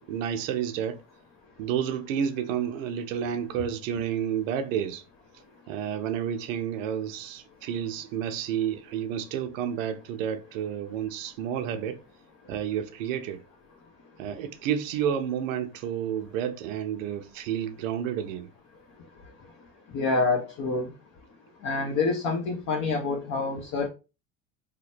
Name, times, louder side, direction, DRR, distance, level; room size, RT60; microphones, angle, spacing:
voice 1, 0.1-1.0 1.6-5.0 5.7-12.0 12.5-13.4 14.2-18.5, right 9 dB, 75° right, 0.6 m, -30 dB
voice 2, 19.9-20.9 21.6-23.9, left 3 dB, 50° left, 0.9 m, -27 dB
2.9 x 2.2 x 4.2 m
hypercardioid pair, 75°, 39 cm